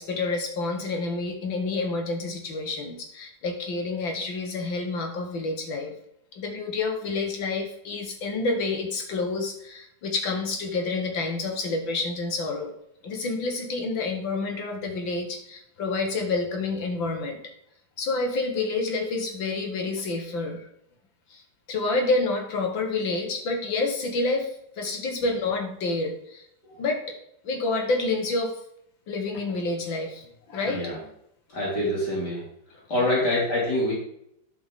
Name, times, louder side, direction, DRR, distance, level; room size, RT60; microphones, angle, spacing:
voice 1, 0.0-5.9 6.3-12.7 13.0-17.4 18.0-20.6 21.3-21.4 21.7-26.5 26.8-27.0 27.4-28.5 29.1-30.8, left 3 dB, 75° left, 3 dB, 2.3 m, -28 dB
voice 2, 30.6-31.0 31.5-32.4 32.9-33.9, left 1 dB, 60° left, -6 dB, 3.4 m, -25 dB
11.5 x 5.3 x 3.8 m, 0.75 s
omnidirectional pair, 2.1 m